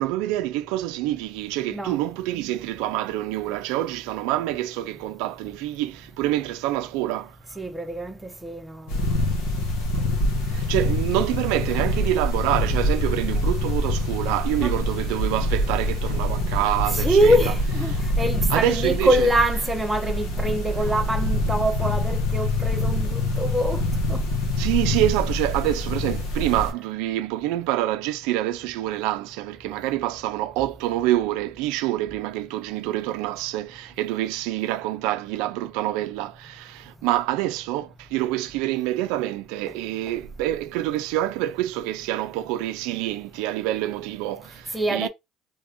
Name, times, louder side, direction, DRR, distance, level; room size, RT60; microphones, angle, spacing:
voice 1, 0.0-7.4 10.5-17.4 17.9-18.0 18.5-19.3 24.6-45.1, right 14 dB, 80° right, 0.3 m, -26 dB
voice 2, 7.6-8.9 14.6-14.7 16.9-23.8 24.1-24.2 44.7-45.1, right 1 dB, 10° right, 0.8 m, -24 dB
sound 1, 8.9-26.7, left 1 dB, 75° left, 1.3 m, -25 dB
3.4 x 2.5 x 3.5 m
supercardioid pair, 100°, 0 cm